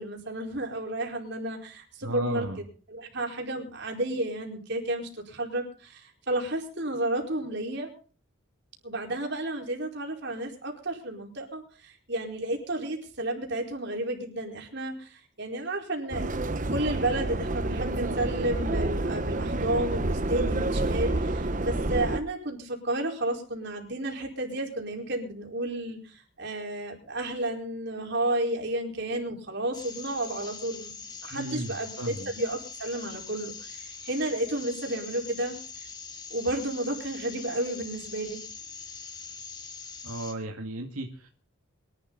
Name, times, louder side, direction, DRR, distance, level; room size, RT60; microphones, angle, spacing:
voice 1, 0.0-7.9 8.8-30.9 31.2-35.9 36.3-38.4, right 1 dB, 50° right, 1 dB, 4.5 m, -32 dB
voice 2, 2.0-2.6 31.3-32.3 40.0-41.3, right 1 dB, 90° right, 3 dB, 2.1 m, -35 dB
Subway metro underground, 16.1-22.2, right 2 dB, 35° right, 0.9 m, -29 dB
sound 1, 29.7-40.3, left 5 dB, 20° left, 2.1 m, -42 dB
23.0 x 12.0 x 4.0 m, 0.40 s
head